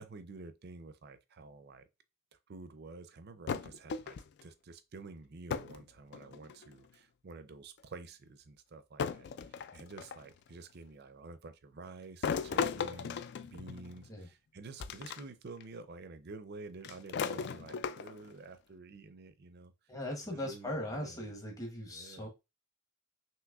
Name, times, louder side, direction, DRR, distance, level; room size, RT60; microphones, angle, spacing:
voice 1, 0.0-1.9 2.5-19.7 20.2-21.3 21.9-22.3, right 3 dB, 45° right, 0.5 m, -50 dB
sound 1, 3.5-4.4 5.5-5.8 6.1-6.7 7.8-7.9 9.0-10.3 12.2-14.1 14.8-15.2 15.6-15.7 16.8-18.3, left 6 dB, 50° left, 0.3 m, -37 dB
voice 2, 19.9-22.3, left 1 dB, 15° left, 0.9 m, -39 dB
5.9 x 2.9 x 2.3 m
head